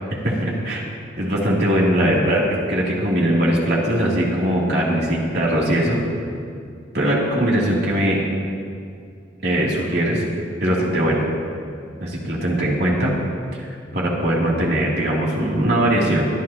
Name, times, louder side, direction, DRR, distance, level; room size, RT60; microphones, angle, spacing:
voice 1, 0.2-0.8 1.2-6.0 6.9-8.2 9.4-10.2 10.6-11.2 12.0-13.1 13.6-13.7 13.9-16.3, right 1 dB, 55° right, -5 dB, 3.1 m, -20 dB
24.0 x 11.5 x 3.0 m, 2.3 s
head